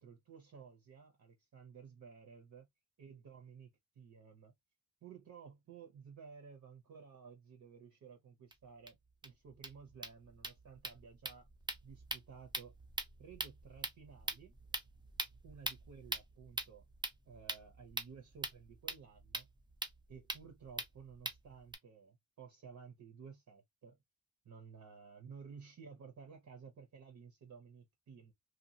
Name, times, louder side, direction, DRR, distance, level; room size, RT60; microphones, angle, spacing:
voice 1, 0.0-2.7 3.0-3.7 4.0-4.5 5.0-9.0 9.2-11.5 11.8-12.7 13.2-14.5 15.4-16.8 17.3-19.5 20.1-24.0 24.4-28.3, right 6 dB, 60° right, 0.8 m, -55 dB
sound 1, 8.5-8.6 8.9-9.0 9.2-9.3 9.5-21.8, right 2 dB, 15° right, 0.5 m, -44 dB
2.8 x 2.3 x 2.7 m
wide cardioid pair, 180°, 33 cm